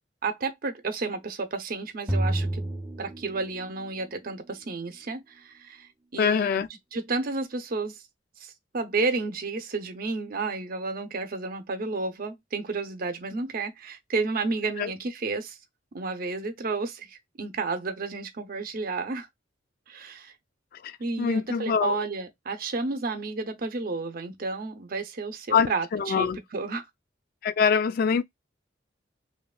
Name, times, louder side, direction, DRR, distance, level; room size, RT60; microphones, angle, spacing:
voice 1, 0.2-2.6 3.0-6.6 6.9-8.0 8.4-15.6 15.9-19.3 19.9-20.3 21.0-26.8, right 3 dB, 50° right, 0.6 m, -31 dB
sound 1, 2.1-3.9, right 1 dB, 5° right, 0.6 m, -29 dB
voice 2, 6.2-6.7 14.8-14.9 20.8-20.9 21.2-22.0 25.5-26.4 27.4-28.2, left 6 dB, 50° left, 0.3 m, -24 dB
2.9 x 2.2 x 2.3 m
head